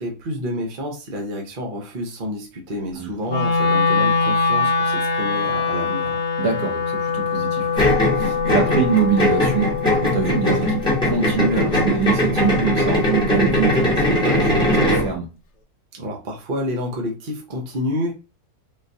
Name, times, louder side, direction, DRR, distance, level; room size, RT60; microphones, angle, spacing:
voice 1, 0.0-6.2 15.9-18.1, left 1 dB, 45° right, 0 dB, 0.7 m, -29 dB
Wind instrument woodwind instrument, 3.3-13.4, left 4 dB, 65° left, 1.0 m, -24 dB
voice 2, 6.4-9.7 10.0-15.3, right 6 dB, 80° right, 1 dB, 1.5 m, -24 dB
sound 1, 7.8-15.1, left 1 dB, 5° left, 0.9 m, -20 dB
3.8 x 2.4 x 2.5 m, 0.29 s
omnidirectional pair, 1.5 m